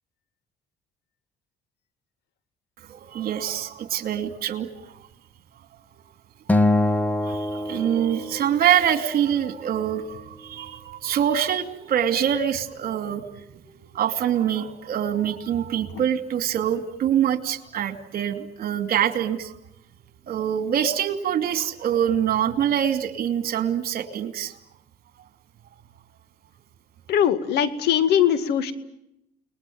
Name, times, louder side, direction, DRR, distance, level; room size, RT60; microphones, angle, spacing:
voice 1, 2.9-4.9 7.2-19.5 20.3-24.5, right 9 dB, 60° right, 9 dB, 2.8 m, -25 dB
Acoustic guitar, 6.5-8.9, left 1 dB, 10° left, 1.3 m, -24 dB
voice 2, 27.1-28.7, left 9 dB, 75° left, 12 dB, 2.2 m, -21 dB
30.0 x 20.5 x 9.4 m, 0.82 s
cardioid pair, 110°, 17 cm